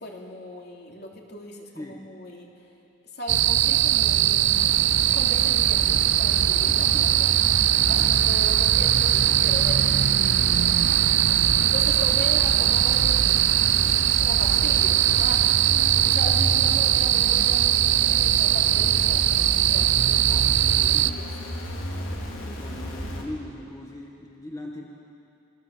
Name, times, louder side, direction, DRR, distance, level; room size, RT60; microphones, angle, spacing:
voice 1, 0.0-2.5 3.1-4.7 5.1-7.3 7.9-10.8 11.6-13.5 14.2-15.4 16.0-21.3, left 1 dB, 50° left, -1 dB, 3.4 m, -38 dB
sound 1, 3.3-21.1, right 12 dB, 60° right, 0.6 m, -20 dB
sound 2, 4.5-23.2, left 1 dB, 75° left, 3.9 m, -34 dB
voice 2, 6.6-7.4 7.7-8.0 20.8-21.1 22.4-24.8, left 1 dB, 15° left, -1 dB, 1.7 m, -40 dB
27.5 x 23.5 x 7.6 m, 2.7 s
head